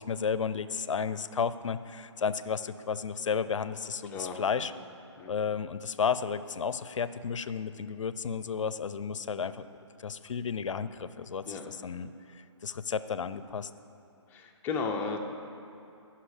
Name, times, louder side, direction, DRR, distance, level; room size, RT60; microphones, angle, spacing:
voice 1, 0.0-4.7 5.3-9.7 10.0-12.1 12.6-13.7, left 6 dB, 80° left, 14 dB, 0.5 m, -32 dB
voice 2, 4.1-4.6 5.2-5.3 11.5-11.7 14.3-15.2, left 4 dB, 10° left, 2 dB, 0.5 m, -35 dB
14.5 x 5.8 x 4.9 m, 2.7 s
hypercardioid pair, 150°, 16 cm